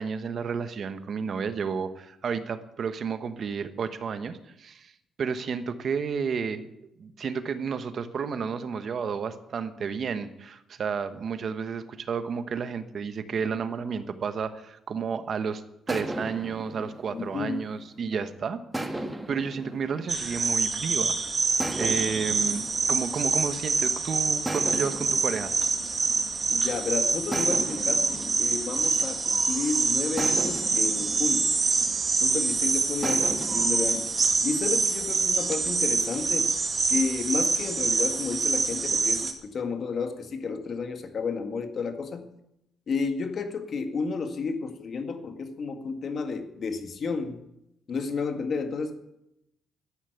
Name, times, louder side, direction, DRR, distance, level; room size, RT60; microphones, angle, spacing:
voice 1, 0.0-4.9 5.2-6.7 7.0-15.6 15.9-21.1 21.8-25.5, right 6 dB, 55° right, 10 dB, 1.2 m, -31 dB
sound 1, 15.9-18.1 18.7-21.0 21.6-23.9 24.5-26.7 27.3-29.6 30.2-32.4 33.0-34.9, right 1 dB, 10° right, 1.6 m, -37 dB
voice 2, 17.1-17.6 26.5-31.5 32.2-34.1 34.4-36.5 36.9-42.3 42.9-47.4 47.9-49.0, left 4 dB, 50° left, 7 dB, 1.9 m, -31 dB
sound 2, 20.1-39.3, right 4 dB, 35° right, 2.3 m, -26 dB
13.0 x 10.5 x 8.0 m, 0.84 s
cardioid pair, 90°, 0 cm